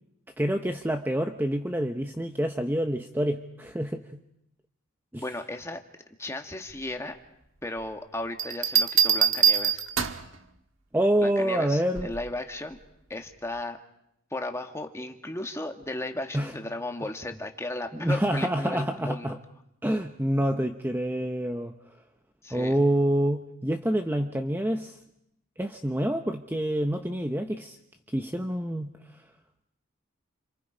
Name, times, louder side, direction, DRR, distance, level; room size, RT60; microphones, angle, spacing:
voice 1, 0.4-4.0 5.1-5.2 10.9-12.1 16.3-16.5 17.9-19.4 19.8-21.7 22.5-25.0 25.6-27.8 28.1-28.9, right 1 dB, 10° right, 5 dB, 0.9 m, -27 dB
voice 2, 5.2-5.8 6.2-7.2 7.6-9.8 11.2-12.8 13.1-13.8 14.3-19.4 22.4-22.8, left 2 dB, 15° left, 4 dB, 1.8 m, -35 dB
sound 1, 8.4-10.3 12.0-12.3, right 8 dB, 70° right, 1.5 m, -23 dB
29.5 x 28.0 x 5.1 m, 0.79 s
head